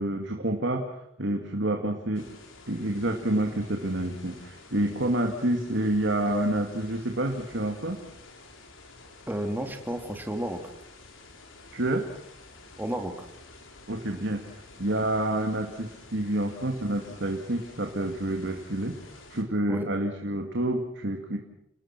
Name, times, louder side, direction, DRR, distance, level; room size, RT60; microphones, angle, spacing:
voice 1, 0.0-2.3 2.7-8.0 11.7-12.0 13.9-14.4 14.8-18.9 19.3-21.4, right 1 dB, 65° right, 3 dB, 2.4 m, -28 dB
sound 1, 2.1-19.4, left 3 dB, 85° left, 3.9 m, -50 dB
voice 2, 9.3-10.6 12.8-13.3 19.7-20.0, right 1 dB, 10° right, 4 dB, 2.4 m, -32 dB
30.0 x 19.0 x 6.0 m, 0.77 s
head